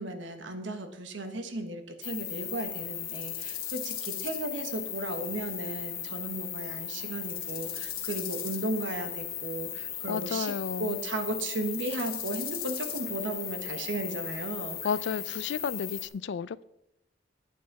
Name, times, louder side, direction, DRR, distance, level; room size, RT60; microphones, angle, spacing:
voice 1, 0.0-14.8, right 2 dB, 85° right, 1.2 m, -35 dB
sound 1, 2.0-16.1, left 11 dB, 50° left, 1.6 m, -37 dB
voice 2, 10.1-11.0 14.8-16.6, left 6 dB, 75° left, 0.4 m, -32 dB
9.2 x 8.5 x 4.6 m
head